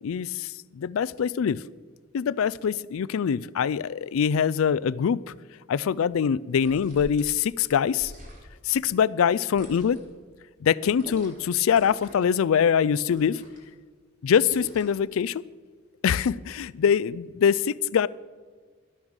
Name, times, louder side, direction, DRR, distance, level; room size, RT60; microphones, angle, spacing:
voice 1, 0.0-1.6 2.1-5.2 5.7-8.1 8.6-10.0 10.6-13.4 14.2-15.4 16.0-18.1, left 7 dB, 80° left, 21 dB, 0.3 m, -24 dB
sound 1, 6.5-7.2 7.9-8.6 9.5-10.1 11.0-11.4 11.7-12.3 13.1-13.7 14.5-15.0, equal, 40° right, 2.5 m, -44 dB
12.5 x 8.7 x 6.3 m, 1.5 s
head